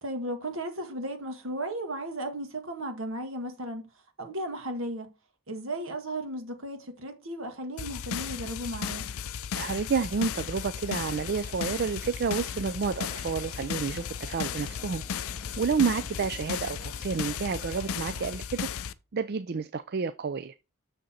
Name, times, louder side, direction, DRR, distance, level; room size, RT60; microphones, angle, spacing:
voice 1, 0.0-3.8 4.2-5.1 5.5-9.0, right 1 dB, 60° right, 1.7 m, -35 dB
sound 1, 7.8-18.9, left 8 dB, 70° left, 0.5 m, -35 dB
voice 2, 9.6-15.0 15.6-18.7 19.1-20.5, right 5 dB, 45° right, 0.4 m, -30 dB
sound 2, 10.1-18.3, equal, 25° left, 2.7 m, -52 dB
6.7 x 6.4 x 4.3 m
head